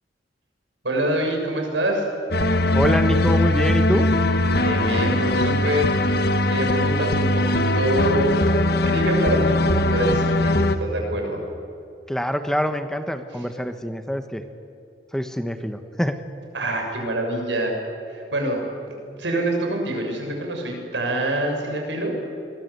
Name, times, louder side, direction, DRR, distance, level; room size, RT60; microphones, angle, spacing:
voice 1, 0.8-2.1 4.5-5.9 6.5-8.4 8.8-11.4 16.5-17.8 18.1-22.1, right 1 dB, 90° right, 2 dB, 6.8 m, -25 dB
sound 1, 2.3-10.8, left 1 dB, 60° left, 1.4 m, -20 dB
voice 2, 2.7-4.1 12.1-14.4 15.1-16.2, equal, 5° left, 8 dB, 1.2 m, -25 dB
27.0 x 22.0 x 8.3 m, 2.5 s
head